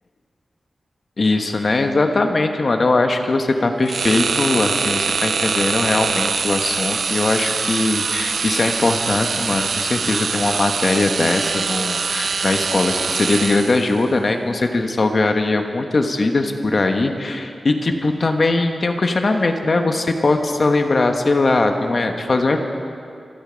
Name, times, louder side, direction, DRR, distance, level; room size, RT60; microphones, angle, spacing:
voice 1, 1.2-22.7, left 2 dB, 45° left, 5 dB, 1.1 m, -20 dB
sound 1, 3.9-14.0, right 5 dB, 70° right, 0.5 m, -23 dB
26.5 x 9.0 x 5.1 m, 2.4 s
wide cardioid pair, 120°, 0 cm